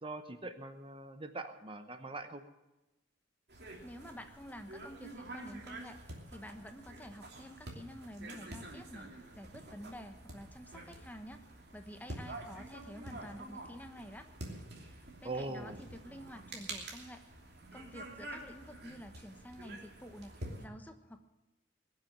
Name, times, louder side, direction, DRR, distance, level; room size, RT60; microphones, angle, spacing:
voice 1, 0.0-2.4 15.2-15.8, right 2 dB, 30° right, 8 dB, 0.9 m, -42 dB
sound 1, 3.5-20.6, right 2 dB, 60° right, 2.9 m, -48 dB
voice 2, 3.8-11.4 11.7-14.3 14.9-17.3 17.7-21.2, equal, 10° left, 6 dB, 1.1 m, -50 dB
21.5 x 7.5 x 7.4 m, 1.0 s
head